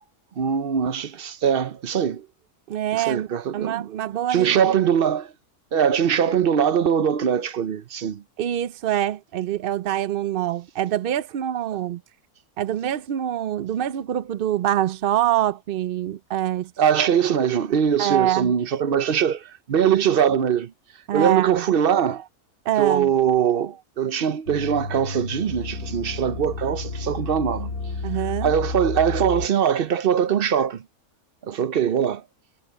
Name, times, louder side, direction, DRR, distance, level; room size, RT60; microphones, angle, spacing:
voice 1, 0.4-2.3 2.9-3.9 4.3-5.3 5.7-8.2 16.8-20.7 21.1-22.3 22.8-27.7 28.4-30.8 31.4-32.2, right 8 dB, 50° right, 0.8 m, -22 dB
voice 2, 2.7-3.3 3.5-4.6 8.4-12.0 12.6-16.7 18.0-18.5 21.1-21.6 22.7-23.1 28.0-28.5, right 11 dB, 75° right, 0.5 m, -25 dB
sound 1, 24.5-29.7, left 3 dB, 70° left, 2.4 m, -31 dB
omnidirectional pair, 1.6 m